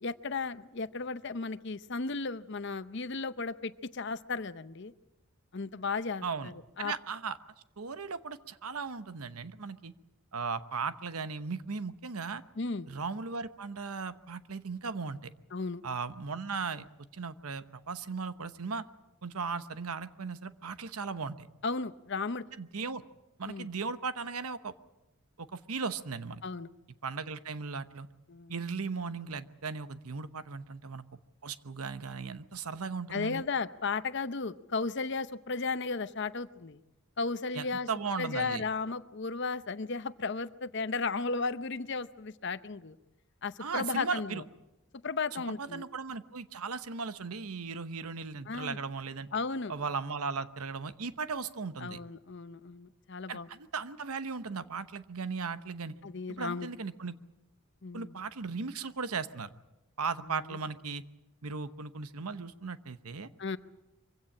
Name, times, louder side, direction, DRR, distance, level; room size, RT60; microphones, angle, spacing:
voice 1, 0.0-4.9 5.5-6.9 12.6-12.9 15.5-15.8 21.6-22.4 23.4-23.7 26.4-26.7 28.3-28.5 33.1-36.8 37.2-37.9 38.2-43.0 43.4-44.4 45.0-45.8 48.5-48.8 49.3-49.7 51.8-53.5 56.0-56.7 57.8-58.1 60.3-60.6 63.4-63.6, left 4 dB, 50° left, 13 dB, 0.7 m, -35 dB
voice 2, 6.2-6.5 6.8-7.4 7.8-9.9 10.3-12.4 12.9-15.3 15.8-16.9 17.1-18.8 19.2-21.5 22.6-23.0 23.4-24.7 25.4-26.4 27.0-28.1 28.5-31.0 31.4-33.4 37.5-38.6 43.6-44.4 45.3-49.3 49.7-52.0 53.3-55.9 56.3-57.2 57.9-59.5 60.0-61.0 61.4-63.3, right 5 dB, 85° right, 12 dB, 1.0 m, -37 dB
24.0 x 16.5 x 8.5 m, 1.0 s
head